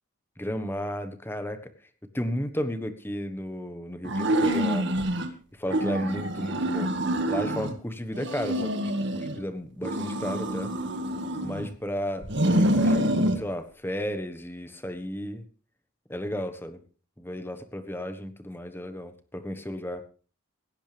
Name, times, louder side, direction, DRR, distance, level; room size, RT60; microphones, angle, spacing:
voice 1, 0.4-1.7 2.1-5.0 5.5-6.9 7.3-8.8 9.1-10.8 11.4-15.5 16.1-16.8 17.2-20.0, equal, 10° left, 9 dB, 1.4 m, -33 dB
sound 1, 4.0-5.3 5.7-7.8 8.1-9.4 9.8-11.7 12.2-13.4, right 1 dB, 55° right, 1.9 m, -26 dB
17.0 x 16.5 x 3.5 m, 0.38 s
head